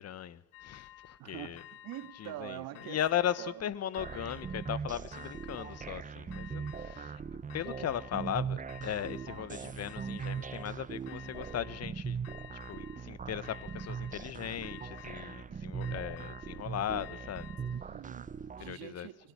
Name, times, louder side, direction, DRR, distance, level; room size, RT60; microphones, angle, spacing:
voice 1, 0.0-1.6 2.2-7.2 7.5-12.2 12.7-17.5 18.6-19.1, left 10 dB, 40° left, 1.5 m, -37 dB
sound 1, 0.5-1.2 1.6-2.4 2.7-3.6 3.9-4.8 5.1-6.0 6.3-7.2 7.5-8.4 8.7-9.5 9.9-10.7 11.1-11.9 12.2-13.1 13.4-14.3 14.6-15.5 15.8-17.9, left 13 dB, 80° left, 2.1 m, -52 dB
voice 2, 1.2-3.0 3.4-3.7 17.7-19.3, right 14 dB, 60° right, 2.1 m, -45 dB
sound 2, 4.0-18.7, right 6 dB, 20° right, 0.8 m, -40 dB
25.0 x 17.5 x 6.9 m
supercardioid pair, 110°, 39 cm